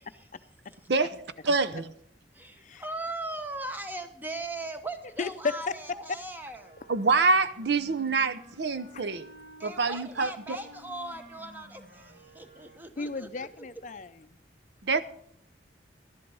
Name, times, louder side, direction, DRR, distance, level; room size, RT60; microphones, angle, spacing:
voice 1, 1.4-1.9 6.9-9.3 9.6-10.3 14.8-15.0, right 4 dB, 70° right, 0.7 m, -25 dB
voice 2, 2.3-6.8 9.6-13.7, right 2 dB, 10° right, 1.0 m, -39 dB
voice 3, 5.2-5.7 8.9-9.2 13.0-14.4, left 4 dB, 40° left, 0.5 m, -34 dB
Wind instrument woodwind instrument, 6.4-9.7 10.3-13.1, equal, 55° right, 2.9 m, -53 dB
12.5 x 11.0 x 5.4 m
head